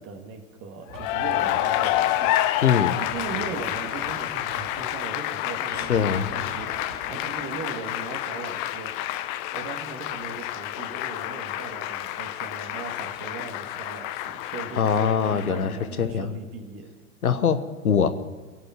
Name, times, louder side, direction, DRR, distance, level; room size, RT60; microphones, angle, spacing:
voice 1, 0.0-2.6 3.0-9.1 9.5-16.9, right 5 dB, 30° right, 4 dB, 1.8 m, -39 dB
Cheering / Applause, 0.9-15.8, left 14 dB, 35° left, 0.7 m, -29 dB
sound 1, 0.9-2.5 3.1-8.2, right 4 dB, 65° right, 2.9 m, -43 dB
voice 2, 2.6-2.9 5.9-6.3 14.8-15.7 16.0-16.3 17.2-18.1, left 7 dB, 75° left, 11 dB, 1.2 m, -22 dB
23.0 x 8.0 x 5.8 m, 1.4 s
figure-of-eight pair, 95°, 44 cm